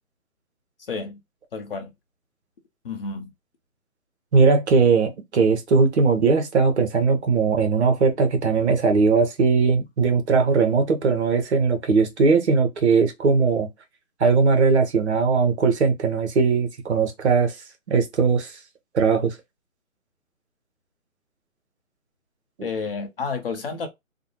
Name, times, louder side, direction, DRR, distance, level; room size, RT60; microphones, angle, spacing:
voice 1, 0.9-1.2 1.5-1.9 2.8-3.3 22.6-23.9, left 4 dB, 45° left, 0.7 m, -30 dB
voice 2, 4.3-13.7 14.2-17.6 17.9-18.6 18.9-19.4 22.6-22.7, right 4 dB, 55° right, 0.8 m, -19 dB
2.6 x 2.2 x 2.8 m
figure-of-eight pair, 145°, 41 cm